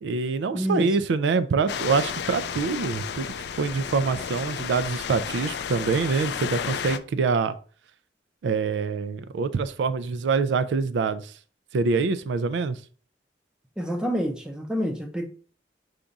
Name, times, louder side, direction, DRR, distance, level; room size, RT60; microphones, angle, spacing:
voice 1, 0.0-3.3 3.6-7.6 8.4-11.3 11.7-12.8, right 4 dB, 80° right, 0.3 m, -25 dB
voice 2, 0.5-0.9 13.8-15.2, equal, 5° right, 0.5 m, -27 dB
sound 1, 1.7-7.0, left 7 dB, 70° left, 0.3 m, -32 dB
5.0 x 2.3 x 3.9 m
head